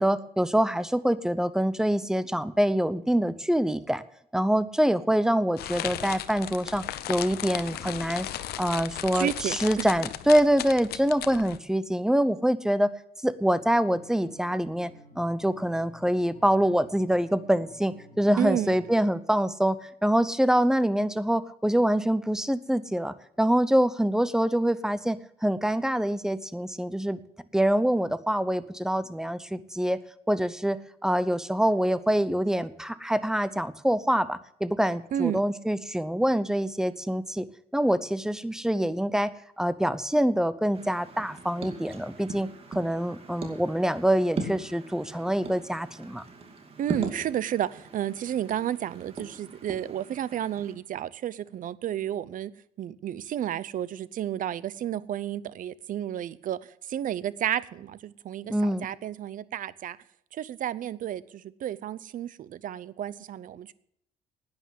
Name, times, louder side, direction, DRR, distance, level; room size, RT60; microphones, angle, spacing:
voice 1, 0.0-4.0 4.3-8.3 8.6-12.9 13.2-14.9 15.2-27.2 27.5-30.0 30.3-37.4 37.7-46.2 58.5-58.9, equal, 5° right, 0.7 m, -25 dB
sound 1, 5.6-11.6, left 12 dB, 70° left, 0.8 m, -36 dB
voice 2, 9.1-9.9 18.4-18.8 35.1-35.4 46.8-52.5 52.8-60.0 60.3-63.7, right 11 dB, 50° right, 0.7 m, -32 dB
sound 2, 13.5-18.9, left 1 dB, 45° left, 4.6 m, -52 dB
sound 3, 40.7-50.7, right 3 dB, 35° right, 2.4 m, -40 dB
11.0 x 9.8 x 7.6 m
cardioid pair, 110°, 17 cm